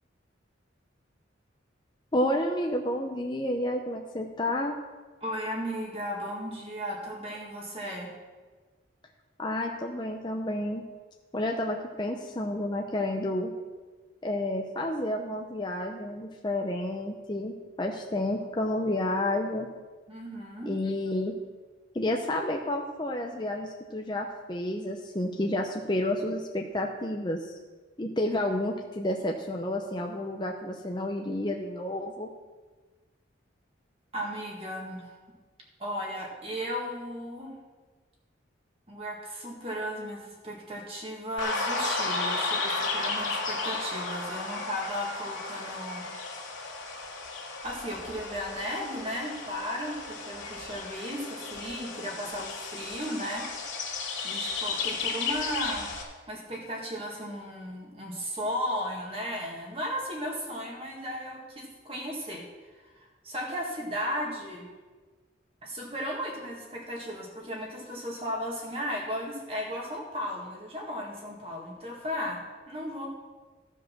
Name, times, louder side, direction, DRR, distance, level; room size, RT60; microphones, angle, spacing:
voice 1, 2.1-4.8 9.4-10.8 11.3-13.5 14.2-19.7 20.7-21.4 21.9-27.5 28.0-32.3, left 1 dB, 25° left, 1 dB, 0.6 m, -30 dB
voice 2, 5.2-8.1 20.1-20.7 34.1-35.2 35.8-37.5 38.9-46.1 47.6-53.5 54.2-55.9 56.3-62.5 62.7-64.7 65.6-73.1, equal, 30° right, -2 dB, 2.0 m, -35 dB
sound 1, 41.4-56.0, left 3 dB, 80° left, 2.4 m, -34 dB
14.5 x 5.2 x 5.9 m, 1.3 s
head